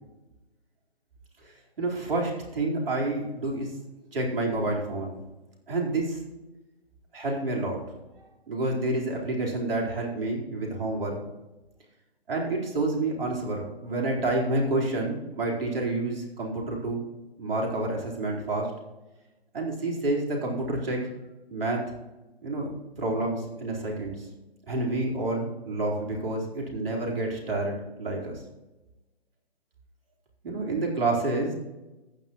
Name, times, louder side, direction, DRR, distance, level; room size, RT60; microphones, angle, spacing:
voice 1, 1.4-3.7 4.1-5.2 5.7-6.2 7.1-7.8 8.5-11.2 12.3-17.0 17.4-18.7 19.5-21.0 21.5-21.9 22.4-24.3 24.7-28.3 30.4-31.5, right 2 dB, 65° right, -2 dB, 4.3 m, -29 dB
14.5 x 9.6 x 3.1 m, 1.1 s
figure-of-eight pair, 135°, 31 cm